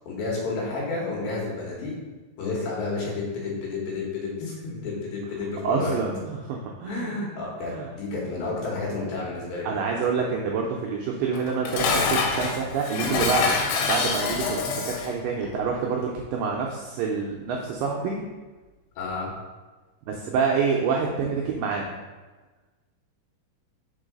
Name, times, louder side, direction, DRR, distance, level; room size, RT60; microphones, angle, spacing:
voice 1, 0.1-1.9 2.4-6.0 6.8-9.7 19.0-19.3, left 3 dB, 70° left, -4 dB, 3.2 m, -31 dB
voice 2, 5.6-7.2 7.7-7.9 9.6-13.6 13.8-18.2 20.1-21.9, right 5 dB, 85° right, 0 dB, 1.9 m, -27 dB
Dishes pots and pans, 11.3-15.2, left 4 dB, 90° left, 2.8 m, -26 dB
5.4 x 4.6 x 5.1 m, 1.3 s
omnidirectional pair, 4.6 m